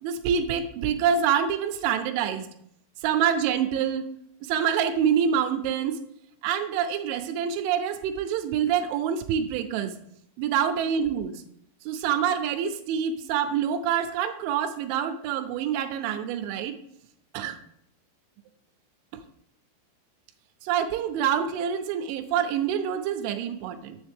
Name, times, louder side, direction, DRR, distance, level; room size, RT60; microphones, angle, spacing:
voice 1, 0.0-2.5 3.0-4.1 4.4-6.0 6.4-10.0 10.4-11.4 11.8-16.8 17.3-17.6 19.1-19.2 20.6-24.0, right 8 dB, 85° right, 9 dB, 2.9 m, -26 dB
7.3 x 7.1 x 3.4 m, 0.73 s
omnidirectional pair, 5.6 m